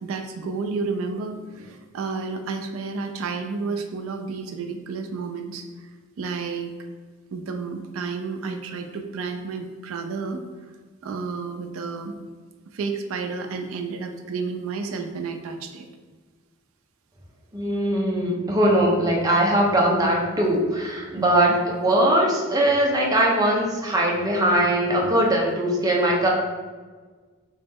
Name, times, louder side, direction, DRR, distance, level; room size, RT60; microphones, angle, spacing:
voice 1, 0.0-5.9 6.2-6.7 7.3-10.4 11.0-12.1 12.7-15.9 21.2-21.6, right 4 dB, 80° right, 5 dB, 0.4 m, -31 dB
voice 2, 17.5-26.3, right 1 dB, 20° right, -2 dB, 0.6 m, -21 dB
3.0 x 3.0 x 3.4 m, 1.4 s
head